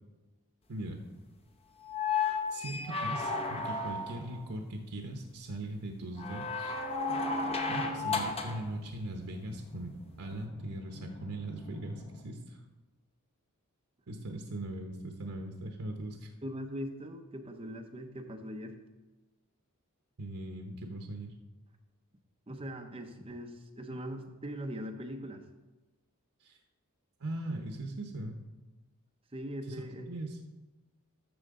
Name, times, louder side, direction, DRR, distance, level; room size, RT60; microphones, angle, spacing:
voice 1, 0.7-1.0 2.5-6.7 7.7-9.9 10.2-12.6 14.1-16.3 20.2-21.3 26.4-26.6 27.2-28.4 29.7-30.4, right 1 dB, 75° right, 3 dB, 0.9 m, -40 dB
sound 1, 1.8-4.3 6.2-8.7 10.3-10.4, left 4 dB, 25° left, 0.8 m, -33 dB
sound 2, 7.1-12.2, left 2 dB, 50° left, 1.2 m, -51 dB
voice 2, 16.4-18.8 22.5-25.4 29.3-30.1, equal, 25° right, 4 dB, 0.8 m, -41 dB
12.0 x 6.8 x 3.7 m, 1.2 s
head